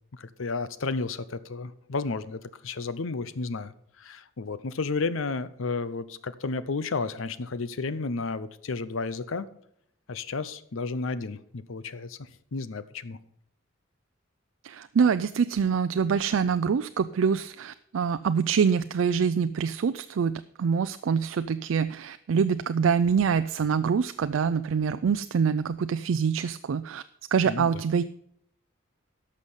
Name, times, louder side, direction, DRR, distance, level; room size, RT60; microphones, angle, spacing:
voice 1, 0.1-9.5 10.1-13.2 27.4-27.8, left 3 dB, 80° left, 15 dB, 0.6 m, -32 dB
voice 2, 14.6-27.0 27.3-28.0, right 6 dB, 75° right, 11 dB, 0.4 m, -25 dB
11.5 x 6.5 x 5.5 m, 0.71 s
head